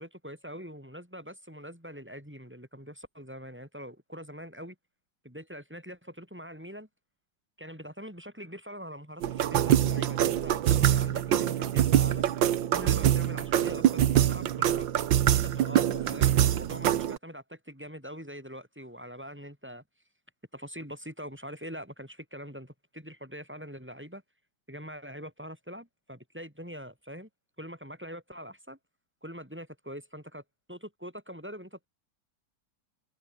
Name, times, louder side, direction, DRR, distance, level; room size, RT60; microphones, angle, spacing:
voice 1, 0.0-4.8 5.2-6.9 7.6-12.3 12.7-14.9 15.3-19.8 20.5-24.2 24.7-27.3 27.6-28.8 29.2-30.4 30.7-31.9, equal, 5° right, 6.2 m, -43 dB
sound 1, 9.2-17.2, right 11 dB, 85° right, 1.8 m, -24 dB
omnidirectional pair, 2.0 m